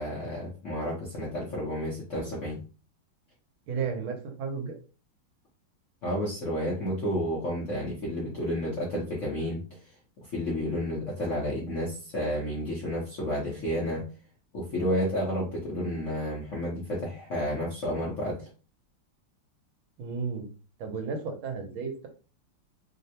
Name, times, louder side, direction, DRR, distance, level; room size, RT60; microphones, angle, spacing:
voice 1, 0.0-2.6 6.0-9.8 10.2-14.1 14.5-18.5, equal, 60° left, -5 dB, 0.8 m, -31 dB
voice 2, 3.7-4.8 20.0-20.5 20.8-22.1, right 5 dB, 75° right, 4 dB, 1.4 m, -33 dB
3.5 x 2.1 x 2.7 m, 0.35 s
omnidirectional pair, 2.3 m